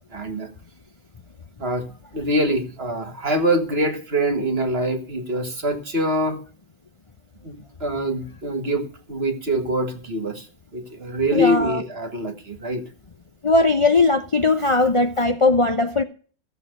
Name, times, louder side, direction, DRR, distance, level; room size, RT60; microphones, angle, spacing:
voice 1, 0.1-0.5 1.6-1.9 2.1-6.4 7.4-10.5 10.7-12.9, equal, 35° right, 1.9 m, -24 dB
voice 2, 11.3-11.8 13.4-16.0, left 3 dB, 35° left, 0.5 m, -19 dB
15.0 x 7.8 x 6.6 m
omnidirectional pair, 1.9 m